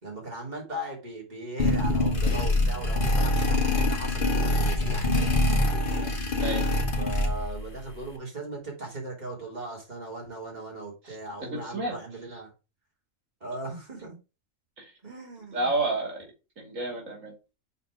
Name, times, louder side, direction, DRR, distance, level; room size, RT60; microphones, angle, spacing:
voice 1, 0.0-6.1 7.0-12.5 13.4-14.2 15.0-15.7, right 2 dB, 35° right, 3.3 m, -38 dB
sound 1, 1.6-7.7, left 1 dB, 40° left, 1.5 m, -24 dB
voice 2, 11.6-11.9 14.8-14.9 15.5-16.2 16.6-17.3, right 2 dB, 80° right, 2.9 m, -30 dB
6.9 x 4.3 x 4.9 m
omnidirectional pair, 1.3 m